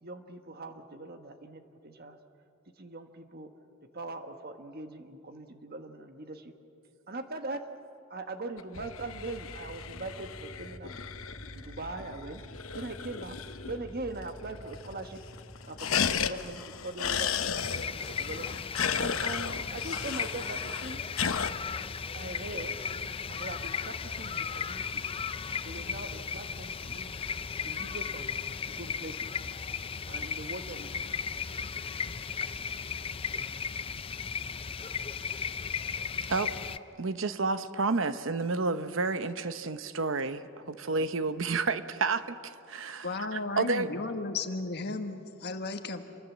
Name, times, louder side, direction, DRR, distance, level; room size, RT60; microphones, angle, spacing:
voice 1, 0.0-2.2 2.8-3.5 3.9-6.5 7.1-7.6 8.1-11.1 11.5-12.4 12.7-13.4 13.6-15.2 15.7-18.6 19.0-21.0 22.1-22.7 23.3-25.0 25.6-27.2 27.6-28.3 28.7-29.3 30.1-30.9, right 2 dB, 50° right, 7 dB, 1.5 m, -41 dB
sound 1, 8.6-13.9 14.2-14.3 14.5-15.1 15.3-21.5, left 7 dB, 85° left, 0.9 m, -34 dB
sound 2, 8.8-16.8, equal, 10° left, 6.1 m, -49 dB
sound 3, 17.6-36.8, left 6 dB, 25° left, 0.5 m, -36 dB
voice 2, 37.0-43.9, right 3 dB, 65° right, 11 dB, 0.9 m, -30 dB
voice 3, 43.0-46.2, left 3 dB, 50° left, 7 dB, 1.5 m, -34 dB
27.5 x 23.5 x 7.3 m, 2.7 s
head